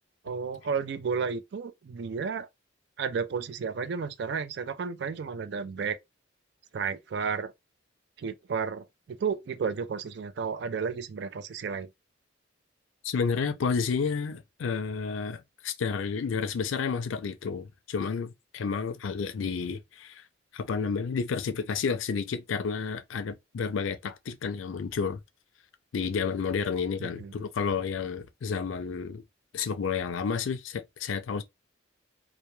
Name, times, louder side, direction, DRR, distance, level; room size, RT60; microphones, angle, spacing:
voice 1, 0.2-2.5 3.0-6.0 6.7-7.5 8.2-11.9 27.0-27.3, right 5 dB, 60° right, 0.3 m, -32 dB
voice 2, 13.0-20.2 20.5-25.2 25.9-29.2 29.5-31.4, left 5 dB, 90° left, 0.4 m, -31 dB
2.2 x 2.2 x 3.0 m
head